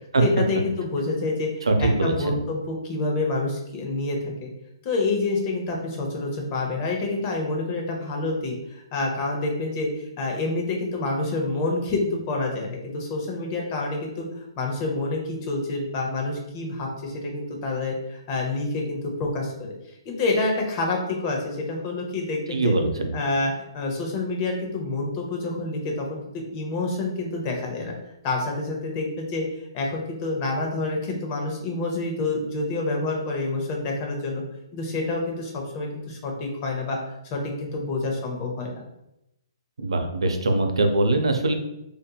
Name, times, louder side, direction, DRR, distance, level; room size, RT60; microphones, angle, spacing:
voice 1, 0.2-4.5 4.8-14.3 14.6-19.7 20.0-22.7 23.1-27.9 28.2-29.4 29.7-34.4 34.7-37.0 37.3-38.8, left 2 dB, 30° left, 0 dB, 0.7 m, -28 dB
voice 2, 1.7-2.4 22.5-23.1 39.8-41.5, right 2 dB, 90° right, 5 dB, 0.5 m, -22 dB
2.7 x 2.5 x 2.2 m, 0.86 s
hypercardioid pair, 145°, 3 cm